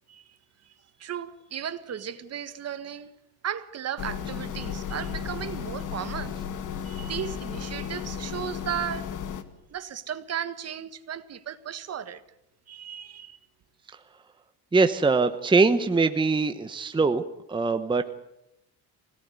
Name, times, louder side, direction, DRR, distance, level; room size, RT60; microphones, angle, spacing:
voice 1, 1.0-3.1 3.4-6.4 6.8-9.1 9.7-12.2 12.7-13.4, right 9 dB, 40° right, 1.5 m, -35 dB
sound 1, 4.0-9.4, left 8 dB, 55° left, 2.1 m, -34 dB
voice 2, 14.7-17.2 17.5-18.1, right 4 dB, 15° right, 1.0 m, -22 dB
25.0 x 18.0 x 9.6 m
cardioid pair, 140°, 37 cm